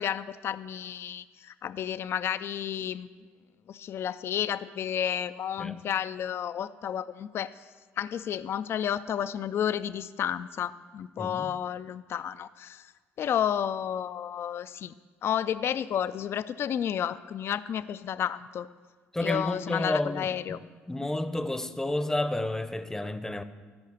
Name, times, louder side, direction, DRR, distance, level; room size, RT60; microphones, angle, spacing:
voice 1, 0.0-3.1 3.7-7.5 8.0-12.9 13.2-14.9 15.2-18.7 19.2-20.6, left 9 dB, 50° left, 0.4 m, -31 dB
voice 2, 11.2-11.5 19.1-20.6 20.9-23.4, left 1 dB, 10° left, 0.7 m, -31 dB
13.0 x 5.7 x 7.0 m
supercardioid pair, 65°, 5 cm